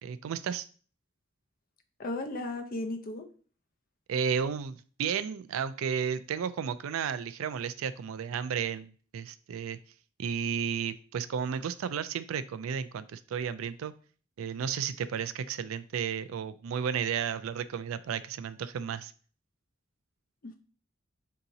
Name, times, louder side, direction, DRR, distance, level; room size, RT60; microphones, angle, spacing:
voice 1, 0.0-0.7 4.1-9.8 10.2-13.9 14.4-19.1, right 7 dB, 90° right, 13 dB, 0.3 m, -33 dB
voice 2, 2.0-3.3 20.4-20.6, left 2 dB, 45° left, 5 dB, 0.6 m, -35 dB
4.7 x 2.8 x 3.9 m, 0.41 s
head